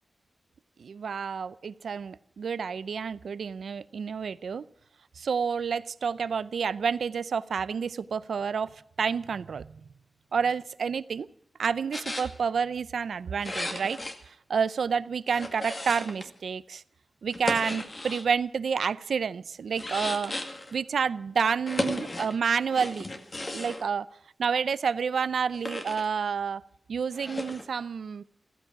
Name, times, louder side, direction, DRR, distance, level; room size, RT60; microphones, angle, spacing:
voice 1, 0.8-4.6 5.2-8.7 9.0-9.7 10.3-11.3 11.6-14.0 14.3-16.8 17.2-20.3 20.7-23.1 23.5-24.1 24.4-26.6 26.9-28.2, right 6 dB, 85° right, 17 dB, 0.5 m, -29 dB
sound 1, 11.9-12.3 13.4-14.1 15.3-16.3 17.3-18.2 19.7-20.7 21.7-22.3 22.7-23.8 25.5-26.0 27.1-27.6, left 2 dB, 30° left, 1.9 m, -35 dB
15.0 x 15.0 x 5.8 m, 0.76 s
wide cardioid pair, 130°, 0 cm